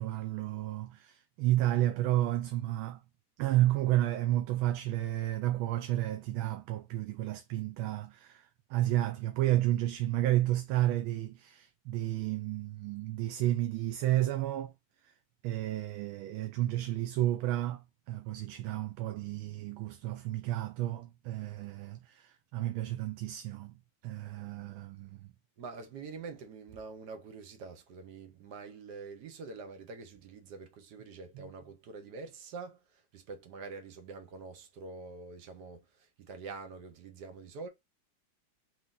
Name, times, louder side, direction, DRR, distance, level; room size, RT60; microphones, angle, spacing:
voice 1, 0.0-3.0 3.4-14.7 15.4-23.8 24.0-25.3, right 14 dB, 85° right, 1.4 m, -31 dB
voice 2, 25.6-37.7, right 4 dB, 60° right, 1.4 m, -46 dB
4.0 x 3.1 x 3.7 m
omnidirectional pair, 2.2 m